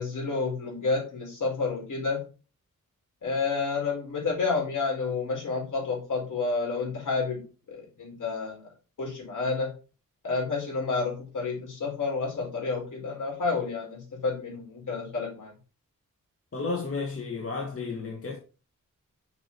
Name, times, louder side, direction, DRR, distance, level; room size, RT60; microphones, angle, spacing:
voice 1, 0.0-2.2 3.2-7.4 7.7-8.6 9.0-9.7 10.2-15.5, left 4 dB, 70° left, 4.9 m, -30 dB
voice 2, 16.5-18.4, left 4 dB, 45° left, 1.7 m, -32 dB
6.8 x 6.0 x 4.2 m
wide cardioid pair, 90°, 32 cm